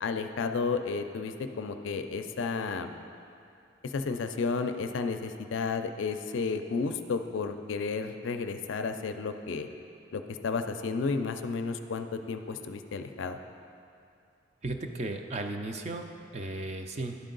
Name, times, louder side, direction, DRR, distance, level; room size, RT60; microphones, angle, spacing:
voice 1, 0.0-2.9 3.8-9.7 10.1-13.4, left 4 dB, 75° left, 7 dB, 0.4 m, -32 dB
voice 2, 14.6-16.1 16.3-17.2, right 2 dB, 35° right, 5 dB, 0.4 m, -35 dB
11.5 x 4.5 x 3.9 m, 2.6 s
head